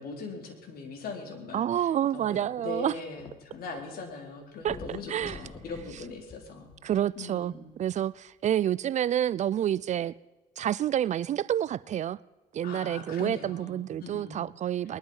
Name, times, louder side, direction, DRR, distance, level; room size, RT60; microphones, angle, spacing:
voice 1, 0.0-6.7 7.2-7.7 12.6-14.4 14.9-15.0, left 3 dB, 60° left, 3.7 m, -40 dB
voice 2, 1.5-2.9 4.6-4.8 5.1-5.4 6.8-7.5 7.8-10.1 10.6-12.2 12.5-15.0, right 10 dB, 45° right, 0.4 m, -28 dB
sound 1, 2.3-3.8 4.1-4.2 4.6-7.2 7.9-8.0, left 3 dB, 25° left, 1.7 m, -46 dB
20.5 x 12.0 x 5.6 m
cardioid pair, 110°, 17 cm